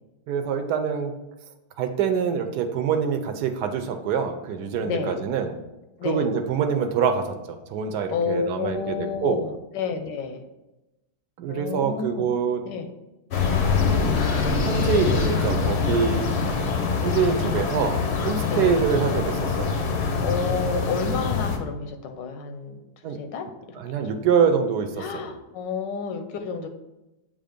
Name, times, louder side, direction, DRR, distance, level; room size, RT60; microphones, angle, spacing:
voice 1, 0.3-1.1 1.8-5.5 6.0-9.5 11.4-12.6 13.8-14.2 14.6-16.3 17.0-19.8 23.0-23.2 23.7-25.3, right 6 dB, 75° right, 6 dB, 1.1 m, -25 dB
voice 2, 4.8-5.2 6.0-6.3 8.1-10.4 11.5-12.3 12.6-12.9 18.4-18.7 20.2-22.8 23.1-23.5 24.0-24.3 25.0-26.7, left 5 dB, 85° left, 7 dB, 1.4 m, -30 dB
sound 1, 13.3-21.6, left 5 dB, 60° left, 0.7 m, -24 dB
7.4 x 2.5 x 5.1 m, 0.99 s
omnidirectional pair, 1.9 m